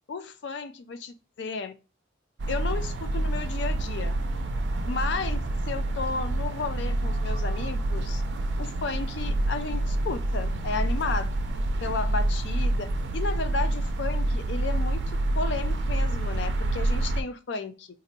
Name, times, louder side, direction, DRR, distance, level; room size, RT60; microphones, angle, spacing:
voice 1, 0.1-1.7 2.5-4.1 4.9-8.2 8.6-11.3 11.8-17.9, left 4 dB, 60° left, 10 dB, 0.4 m, -33 dB
sound 1, 2.4-17.2, right 1 dB, 60° right, 0.4 m, -27 dB
4.0 x 2.5 x 2.6 m, 0.31 s
head